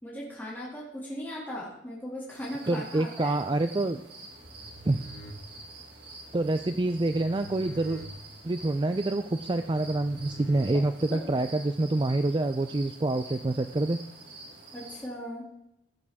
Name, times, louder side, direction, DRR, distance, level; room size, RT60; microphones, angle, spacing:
voice 1, 0.0-3.4 11.1-11.2 14.7-15.5, equal, 10° left, -6 dB, 2.4 m, -38 dB
sound 1, 2.3-15.1, right 2 dB, 60° right, 3.5 m, -47 dB
voice 2, 2.7-4.0 4.8-5.1 6.3-8.0 8.4-14.0, right 2 dB, 25° right, 9 dB, 0.4 m, -27 dB
sound 2, 4.4-11.3, equal, 55° left, 1.9 m, -48 dB
15.5 x 9.8 x 3.6 m, 0.84 s
head